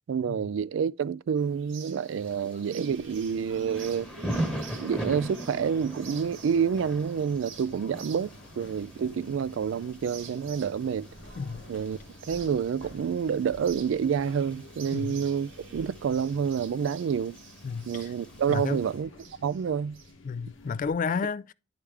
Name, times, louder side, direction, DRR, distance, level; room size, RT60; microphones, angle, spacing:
voice 1, 0.1-4.1 4.8-11.1 11.7-12.0 12.3-17.4 17.9-19.1 19.4-20.0, right 7 dB, 75° right, 0.3 m, -28 dB
sound 1, 1.4-20.1, right 5 dB, 90° right, 1.5 m, -48 dB
Thunder / Rain, 2.1-18.9, right 1 dB, 5° left, 1.3 m, -41 dB
sound 2, 2.9-20.9, left 2 dB, 85° left, 1.1 m, -51 dB
voice 2, 11.4-11.7 14.9-15.2 17.6-18.1 18.5-18.8 20.2-21.5, left 5 dB, 45° left, 0.3 m, -32 dB
10.0 x 4.8 x 3.4 m
head